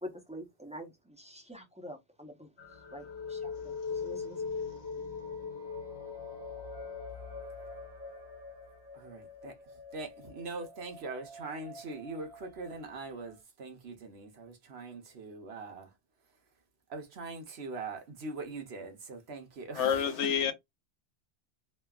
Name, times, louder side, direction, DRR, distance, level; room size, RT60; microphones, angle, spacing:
voice 1, 0.0-2.5 2.9-4.4, equal, 10° right, 0.5 m, -46 dB
sound 1, 2.6-13.3, left 5 dB, 25° left, 1.0 m, -42 dB
voice 2, 8.9-16.0 16.3-16.4 16.9-20.3, right 3 dB, 60° right, 1.1 m, -42 dB
voice 3, 19.7-20.5, left 8 dB, 75° left, 0.9 m, -28 dB
3.1 x 2.3 x 2.3 m
omnidirectional pair, 1.2 m